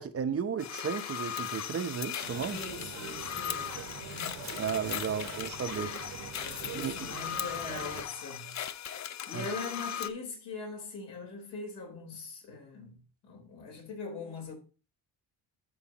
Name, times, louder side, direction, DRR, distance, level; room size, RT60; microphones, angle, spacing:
voice 1, 0.0-2.6 4.6-5.9 6.6-7.1 9.3-9.5, right 7 dB, 35° right, 0.7 m, -34 dB
sound 1, 0.6-10.1, left 9 dB, 40° left, 0.6 m, -38 dB
sound 2, 2.2-8.0, right 9 dB, 70° right, 1.1 m, -44 dB
voice 2, 2.5-4.4 5.1-5.2 6.4-8.6 9.0-14.5, left 4 dB, 80° left, 4.0 m, -42 dB
12.5 x 4.8 x 2.9 m
cardioid pair, 105°, 41 cm